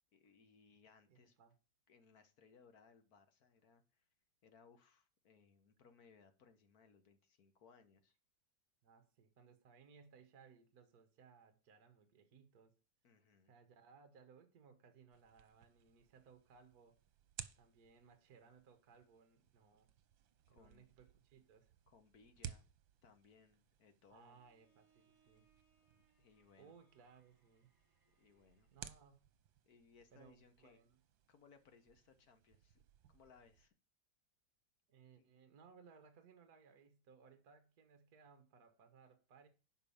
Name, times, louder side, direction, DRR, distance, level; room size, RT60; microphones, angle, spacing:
voice 1, 0.1-1.4 1.9-4.1 4.4-8.1 13.0-13.5 20.4-20.9 21.9-22.6 23.0-24.4 25.9-26.8 28.2-28.7 29.6-30.8 31.3-32.8 33.1-33.7 35.2-35.3, left 5 dB, 55° left, 1.7 m, -67 dB
voice 2, 1.1-1.5 8.8-12.8 13.5-17.0 17.6-19.9 20.5-21.7 24.1-25.5 26.6-27.7 28.7-29.2 30.1-31.0 34.9-39.5, right 6 dB, 55° right, 1.7 m, -64 dB
sound 1, 15.1-33.7, right 10 dB, 85° right, 1.5 m, -59 dB
Bowed string instrument, 24.3-29.1, right 5 dB, 10° right, 3.1 m, -78 dB
8.8 x 5.6 x 7.1 m
omnidirectional pair, 2.1 m